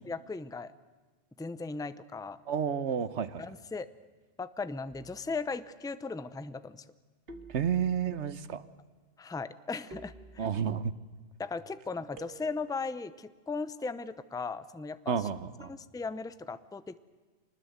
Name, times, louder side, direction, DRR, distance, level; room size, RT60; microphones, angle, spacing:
voice 1, 0.0-0.7 1.4-2.4 3.4-3.9 4.4-6.8 9.2-10.5 11.4-15.3 15.6-17.0, left 4 dB, 5° left, 14 dB, 0.5 m, -37 dB
voice 2, 2.5-3.4 7.5-8.6 10.4-10.9 15.1-15.7, right 7 dB, 65° right, 14 dB, 1.3 m, -31 dB
sound 1, 4.9-5.4 7.3-8.2 9.9-10.8 12.2-12.9, right 2 dB, 50° right, 1.9 m, -51 dB
25.5 x 20.0 x 8.0 m, 1.3 s
omnidirectional pair, 1.3 m